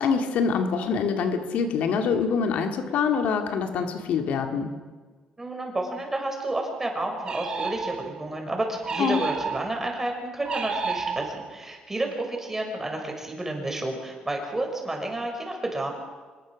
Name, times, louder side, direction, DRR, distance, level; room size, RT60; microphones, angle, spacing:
voice 1, 0.0-4.7 9.0-9.2, left 6 dB, 75° left, 5 dB, 2.2 m, -25 dB
voice 2, 5.4-15.9, right 2 dB, 15° right, 2 dB, 6.1 m, -30 dB
sound 1, 7.2-8.3 8.8-9.9 10.5-11.6, right 5 dB, 40° right, 3.9 m, -31 dB
25.5 x 21.5 x 6.4 m, 1.4 s
cardioid pair, 100°, 3 cm